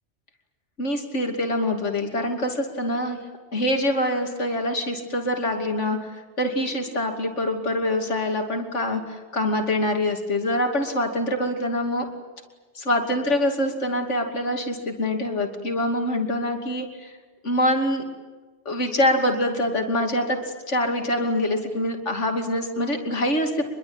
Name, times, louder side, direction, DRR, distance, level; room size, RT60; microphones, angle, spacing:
voice 1, 0.8-3.2 3.5-12.0 12.7-17.2 17.4-18.0 18.6-20.4 20.7-23.7, left 1 dB, 90° left, 3 dB, 3.1 m, -25 dB
26.0 x 22.5 x 8.9 m, 1.3 s
omnidirectional pair, 1.2 m